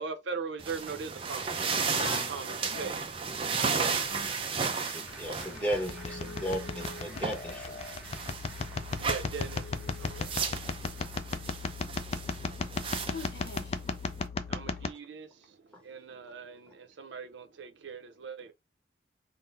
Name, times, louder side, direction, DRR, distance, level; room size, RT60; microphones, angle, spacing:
voice 1, 0.0-3.0 9.0-10.3 14.5-18.5, right 5 dB, 85° right, 0.6 m, -40 dB
sound 1, 0.6-14.3, right 5 dB, 30° right, 0.5 m, -35 dB
voice 2, 2.0-2.9 3.8-4.3 13.1-13.8, left 4 dB, 70° left, 0.6 m, -42 dB
Applause, 3.9-12.8, equal, 10° right, 1.4 m, -53 dB
voice 3, 4.6-7.8, equal, 10° left, 1.1 m, -35 dB
sound 2, 5.1-14.9, left 4 dB, 35° left, 0.3 m, -36 dB
3.7 x 2.1 x 4.0 m
head